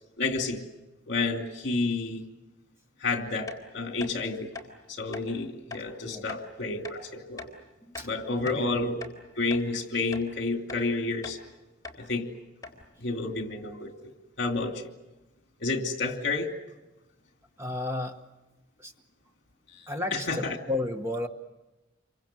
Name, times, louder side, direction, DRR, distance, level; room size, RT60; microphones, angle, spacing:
voice 1, 0.2-0.6 1.1-2.3 3.0-4.5 4.9-7.5 8.0-9.0 9.4-11.4 12.0-12.2 13.0-14.1 14.4-14.9 15.6-16.5 20.1-20.6, left 3 dB, 60° left, 5 dB, 2.8 m, -30 dB
sound 1, 3.5-3.6 4.0-4.1 4.5-4.7 5.1-5.3 5.7-5.9 6.3-6.4 6.8-7.0 7.4-7.5 7.9-8.7 9.0-9.2 9.5-9.7 10.1-10.3 10.7-10.8 11.2-11.4 11.8-12.0 12.3-12.4 12.6-12.8, left 4 dB, 20° left, 3.7 m, -41 dB
voice 2, 17.6-18.2 18.8-18.9 19.9-21.3, left 2 dB, 15° right, 6 dB, 1.1 m, -33 dB
28.0 x 24.5 x 7.6 m, 1.0 s
head